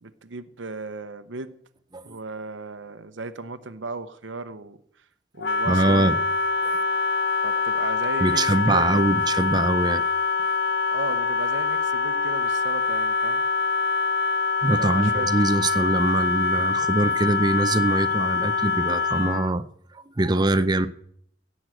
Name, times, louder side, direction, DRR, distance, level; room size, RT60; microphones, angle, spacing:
voice 1, 0.0-1.6 2.0-5.0 5.3-6.2 7.4-9.0 10.9-13.4 14.8-15.3, right 3 dB, 85° right, 11 dB, 0.8 m, -36 dB
Wind instrument woodwind instrument, 5.4-19.5, left 4 dB, 65° left, 0.7 m, -24 dB
voice 2, 5.7-6.1 6.6-6.8 8.2-10.0 14.6-19.6 19.9-20.9, right 2 dB, 25° right, 12 dB, 0.6 m, -23 dB
16.5 x 6.3 x 7.7 m, 0.66 s
head